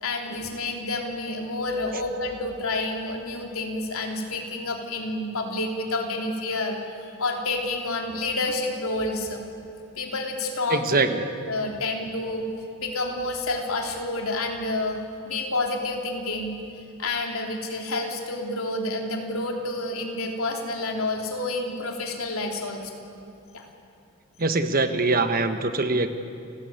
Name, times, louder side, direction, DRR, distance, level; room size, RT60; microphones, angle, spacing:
voice 1, 0.0-9.4 10.0-11.0 11.5-16.6 17.0-23.0 23.5-23.7, left 2 dB, 75° left, 1 dB, 3.4 m, -29 dB
voice 2, 10.7-11.2 24.4-26.1, right 3 dB, 40° right, 8 dB, 1.3 m, -23 dB
29.5 x 16.5 x 8.9 m, 2.6 s
head